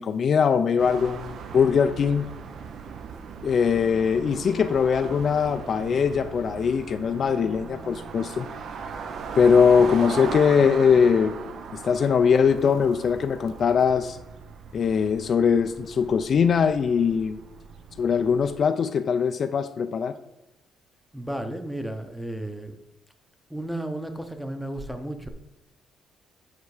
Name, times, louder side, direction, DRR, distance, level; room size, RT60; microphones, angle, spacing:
voice 1, 0.0-2.3 3.4-8.5 9.4-11.3 11.7-14.2 14.7-17.4 18.0-20.2, left 6 dB, 45° left, 9 dB, 0.4 m, -21 dB
sound 1, 0.8-18.6, right 6 dB, 55° right, 0.6 m, -38 dB
voice 2, 21.1-22.8 23.5-25.3, right 1 dB, ahead, 7 dB, 0.8 m, -33 dB
9.3 x 4.6 x 4.8 m, 0.99 s
cardioid pair, 125°, 0 cm